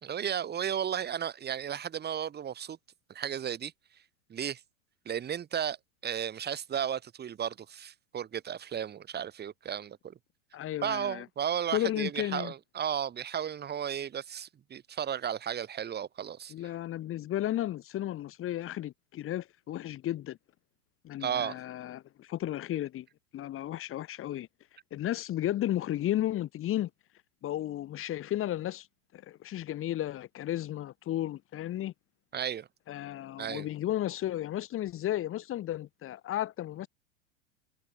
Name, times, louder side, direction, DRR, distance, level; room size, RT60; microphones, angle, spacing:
voice 1, 0.0-2.8 3.1-3.7 4.3-4.6 5.1-5.8 6.0-10.1 10.8-16.5 21.2-21.6 32.3-32.7 33.4-33.7, right 9 dB, 25° right, 4.1 m, -34 dB
voice 2, 10.5-11.3 11.7-12.5 16.5-20.4 21.0-23.1 23.3-24.5 24.9-26.9 27.4-28.9 29.1-31.9 32.9-36.9, left 13 dB, 30° left, 2.8 m, -33 dB
hypercardioid pair, 110°, 40 cm